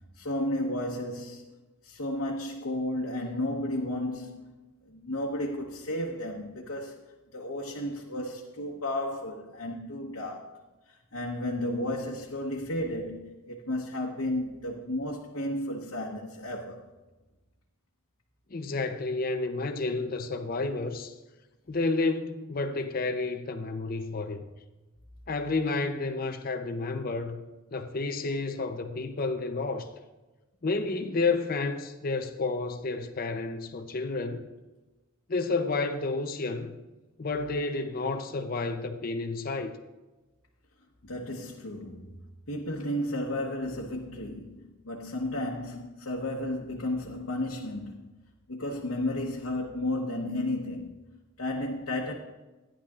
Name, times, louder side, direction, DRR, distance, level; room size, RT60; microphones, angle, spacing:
voice 1, 0.2-1.4 1.8-4.6 4.8-7.0 7.3-10.6 11.1-16.8 41.0-48.0 48.5-50.9 51.4-52.1, left 1 dB, 90° left, 1.1 m, -33 dB
voice 2, 18.5-21.1 21.7-24.5 25.3-27.4 27.7-29.9 30.6-34.5 35.3-36.8 37.2-39.8, left 3 dB, 45° left, 0.6 m, -30 dB
14.5 x 10.0 x 2.4 m
head